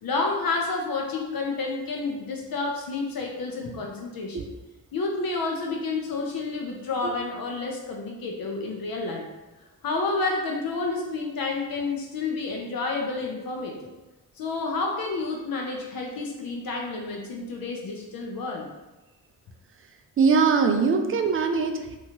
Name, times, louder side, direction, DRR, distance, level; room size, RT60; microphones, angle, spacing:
voice 1, 0.0-4.4 4.9-9.2 9.8-13.9 14.4-18.7, left 3 dB, 55° left, 0 dB, 0.5 m, -30 dB
voice 2, 20.2-22.0, right 5 dB, 35° right, 5 dB, 0.4 m, -22 dB
2.8 x 2.3 x 2.8 m, 1.1 s
cardioid pair, 55°, 42 cm